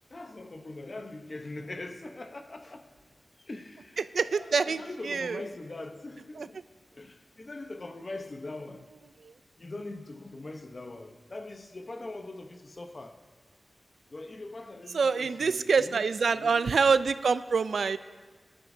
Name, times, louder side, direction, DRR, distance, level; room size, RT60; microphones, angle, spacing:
voice 1, 0.1-2.9 3.4-4.0 4.3-6.6 6.9-8.9 9.6-13.2 14.1-16.1 16.3-16.7, left 2 dB, 40° left, 0.8 m, -42 dB
voice 2, 4.0-5.4 6.4-6.5 9.2-9.3 14.9-18.0, right 5 dB, 90° right, 0.3 m, -26 dB
21.5 x 11.5 x 2.7 m
wide cardioid pair, 110°, 0 cm